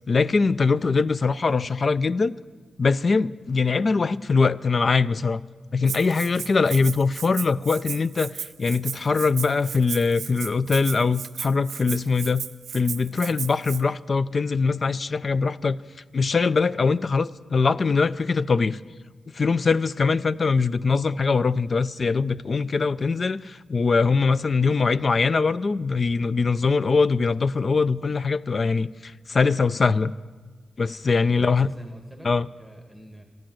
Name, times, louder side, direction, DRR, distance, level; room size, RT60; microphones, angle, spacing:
voice 1, 0.1-2.3 2.8-5.4 5.7-12.5 12.7-15.8 16.1-18.8 19.3-30.1 30.8-31.7 32.2-32.5, left 4 dB, 45° left, 16 dB, 0.4 m, -22 dB
Rattle (instrument), 5.9-13.8, right 7 dB, 80° right, 0.7 m, -35 dB
voice 2, 31.2-33.2, equal, 10° left, 4 dB, 1.4 m, -44 dB
13.5 x 10.5 x 7.7 m, 1.4 s
cardioid pair, 85°, 0 cm